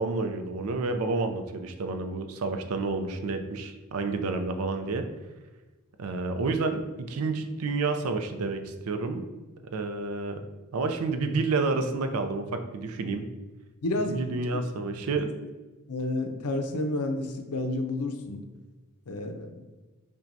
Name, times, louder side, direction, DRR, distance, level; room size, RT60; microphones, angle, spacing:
voice 1, 0.0-5.1 6.0-9.3 9.6-10.4 10.7-13.3 14.0-15.3, right 3 dB, 80° right, 7 dB, 0.4 m, -29 dB
voice 2, 13.8-14.2 15.9-18.4 19.1-19.5, left 2 dB, 80° left, 5 dB, 0.5 m, -30 dB
5.7 x 2.2 x 2.6 m, 1.2 s
head